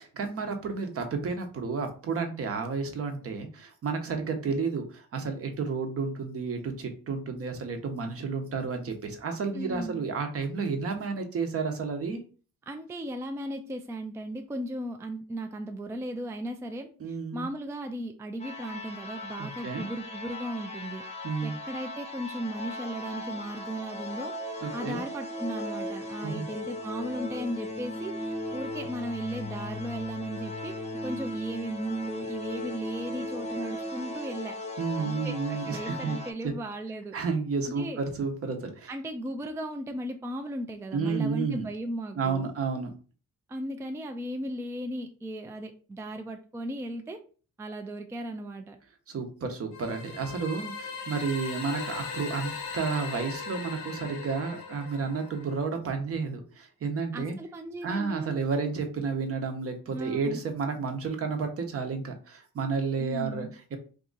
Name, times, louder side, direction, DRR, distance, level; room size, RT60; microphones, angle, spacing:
voice 1, 0.0-12.2 17.0-17.5 19.4-19.9 21.2-21.6 24.6-25.0 26.2-26.5 34.8-36.2 36.4-36.5 37.1-38.9 40.9-41.7 42.1-42.9 49.1-57.4 57.8-63.8, right 4 dB, 50° right, 5 dB, 0.8 m, -31 dB
voice 2, 9.5-10.0 12.7-21.0 21.4-24.3 24.7-30.8 31.0-34.5 35.0-37.1 37.7-38.0 38.9-42.5 43.5-47.2 47.6-48.8 57.1-58.4 59.9-60.4 63.0-63.5, right 1 dB, 10° right, 5 dB, 0.3 m, -36 dB
sound 1, 18.4-36.3, left 1 dB, 20° left, 0.7 m, -37 dB
sound 2, 49.7-55.7, left 5 dB, 80° left, 0.9 m, -39 dB
2.8 x 2.5 x 3.8 m, 0.38 s
cardioid pair, 90°, 30 cm